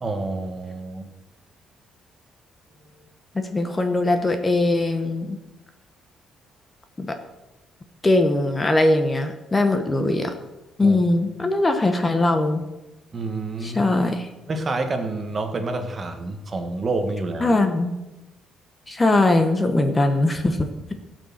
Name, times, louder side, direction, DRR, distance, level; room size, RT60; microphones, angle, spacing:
voice 1, 0.0-1.1 10.8-11.0 13.1-13.8 14.5-17.6, right 3 dB, 25° right, 6 dB, 1.3 m, -28 dB
voice 2, 3.5-5.4 7.0-7.2 8.0-10.3 10.8-12.6 13.6-14.3 17.4-17.9 18.9-20.6, left 2 dB, 15° left, 7 dB, 0.9 m, -20 dB
16.5 x 6.4 x 7.2 m, 1.0 s
cardioid pair, 170°, 0 cm